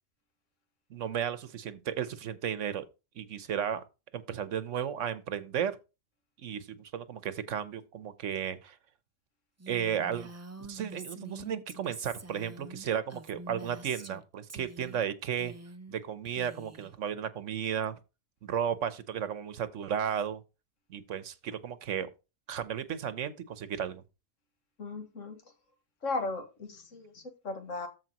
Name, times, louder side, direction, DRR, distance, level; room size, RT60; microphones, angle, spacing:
voice 1, 0.9-2.9 3.2-3.8 4.1-5.8 6.4-8.8 9.7-10.3 10.7-15.5 15.9-18.0 18.4-20.4 20.9-22.1 22.5-24.0, right 8 dB, 80° right, 1.2 m, -34 dB
Female speech woman speaking, 9.6-14.2 14.5-15.1 15.3-16.0 16.2-16.9, right 2 dB, 25° right, 0.4 m, -46 dB
voice 2, 24.8-25.4 26.0-27.9, left 3 dB, 85° left, 1.9 m, -36 dB
14.0 x 4.6 x 2.9 m
omnidirectional pair, 1.3 m